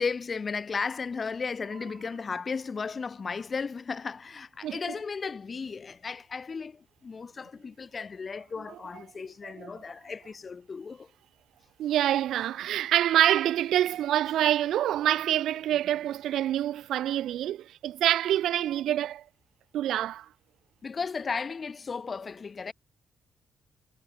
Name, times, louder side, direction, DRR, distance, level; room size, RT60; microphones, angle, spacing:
voice 1, 0.0-11.1 20.8-22.7, left 5 dB, 40° left, 0.4 m, -35 dB
voice 2, 11.8-19.2 19.7-20.3, right 12 dB, 85° right, 0.5 m, -26 dB
cardioid pair, 75°, 0 cm